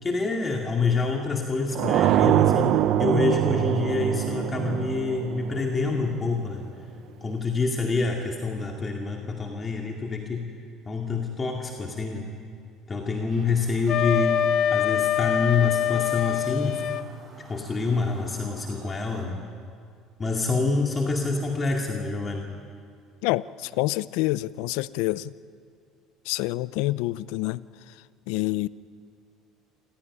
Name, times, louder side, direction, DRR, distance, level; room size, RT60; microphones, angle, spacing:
voice 1, 0.0-6.6 7.2-10.5 10.9-12.3 12.9-14.5 14.7-16.9 17.4-19.4 20.2-22.5, left 4 dB, 25° left, 1 dB, 2.3 m, -27 dB
sound 1, 1.8-6.5, right 12 dB, 60° right, 0.9 m, -24 dB
Chirp tweet, 13.3-19.3, equal, 25° right, 7.7 m, -49 dB
Wind instrument woodwind instrument, 13.9-17.1, left 10 dB, 60° left, 1.0 m, -24 dB
voice 2, 23.2-25.3 26.3-27.6 28.3-28.7, left 18 dB, 80° left, 18 dB, 0.6 m, -27 dB
27.5 x 16.0 x 9.8 m, 2.3 s
cardioid pair, 115°, 0 cm